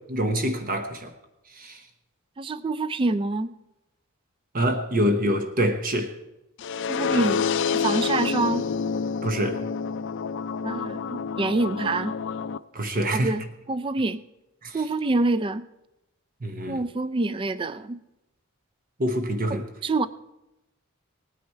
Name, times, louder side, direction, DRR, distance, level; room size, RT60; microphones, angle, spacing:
voice 1, 0.1-1.1 1.6-1.8 4.5-6.2 9.2-9.6 12.7-13.3 14.6-14.8 16.4-16.8 19.0-19.6, equal, 40° right, 6 dB, 1.0 m, -25 dB
voice 2, 2.4-3.5 6.9-8.7 10.6-12.1 13.1-14.2 14.7-15.7 16.7-18.0 19.5-20.1, right 2 dB, 25° right, 14 dB, 0.3 m, -26 dB
sound 1, 6.6-12.6, left 6 dB, 55° left, 0.4 m, -28 dB
18.0 x 9.6 x 4.5 m, 0.94 s
head